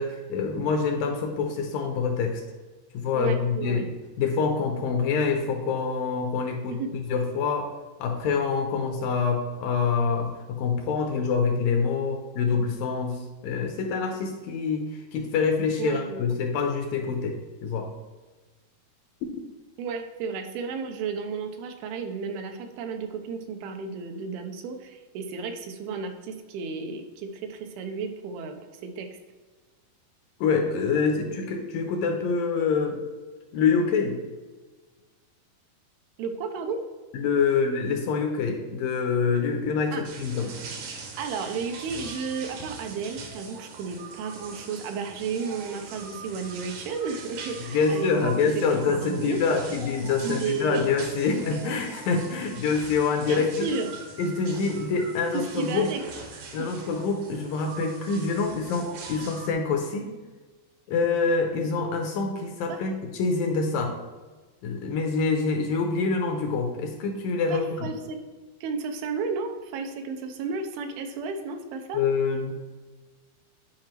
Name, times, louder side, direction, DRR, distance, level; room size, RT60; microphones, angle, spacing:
voice 1, 0.0-2.4 2.9-7.7 8.0-17.9 30.4-33.0 33.5-34.2 37.1-40.5 47.7-53.7 54.2-55.9 56.5-60.1 60.9-64.0 64.6-67.9 71.9-72.5, left 5 dB, 75° left, 4 dB, 2.1 m, -26 dB
voice 2, 3.1-3.9 6.7-6.9 15.8-16.4 19.8-29.1 36.2-36.8 39.9-40.0 41.2-49.4 50.2-50.8 53.3-54.0 55.5-56.0 56.3-56.4 62.7-62.8 67.5-68.2 68.6-72.0, right 5 dB, 90° right, 5 dB, 2.7 m, -33 dB
sound 1, 40.0-59.5, right 4 dB, 70° right, 1.7 m, -42 dB
10.5 x 4.8 x 3.0 m, 1.3 s
omnidirectional pair, 4.5 m